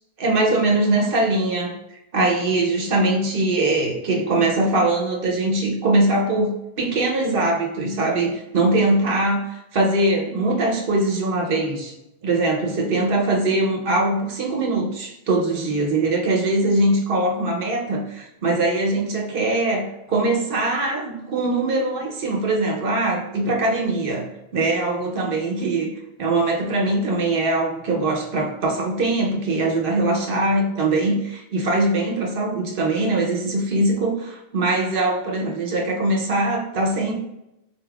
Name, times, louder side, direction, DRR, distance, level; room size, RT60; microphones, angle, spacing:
voice 1, 0.2-11.9 12.2-24.3 24.5-25.9 26.2-37.2, right 2 dB, 60° right, 1 dB, 0.9 m, -22 dB
4.1 x 3.5 x 2.3 m, 0.88 s
omnidirectional pair, 1.1 m